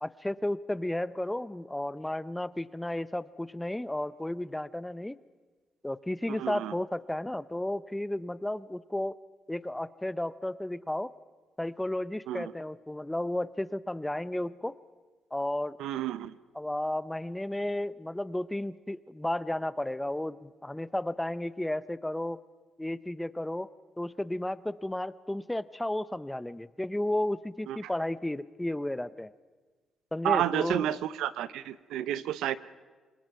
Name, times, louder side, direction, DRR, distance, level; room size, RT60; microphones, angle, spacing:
voice 1, 0.0-5.2 5.8-9.2 9.5-11.1 11.6-14.8 15.3-15.8 16.5-22.4 22.8-23.7 24.0-29.3 30.1-30.9, left 1 dB, 10° left, 17 dB, 0.6 m, -33 dB
voice 2, 6.3-6.7 12.3-12.5 15.8-16.3 27.7-27.8 30.2-32.6, right 12 dB, 90° right, 15 dB, 0.7 m, -30 dB
26.5 x 21.0 x 5.9 m, 1.4 s
cardioid pair, 90°, 0 cm